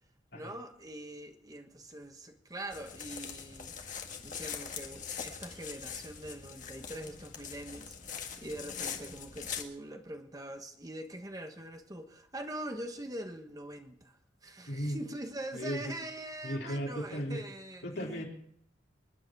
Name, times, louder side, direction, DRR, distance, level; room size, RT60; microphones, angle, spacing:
voice 1, 0.3-18.2, right 1 dB, 20° right, 5 dB, 1.3 m, -43 dB
sound 1, 2.7-9.6, left 7 dB, 45° left, 1.8 m, -42 dB
voice 2, 14.7-15.0 15.5-16.0 16.4-17.4 17.8-18.3, equal, 65° left, -1 dB, 4.3 m, -36 dB
27.0 x 11.0 x 4.7 m, 0.65 s
head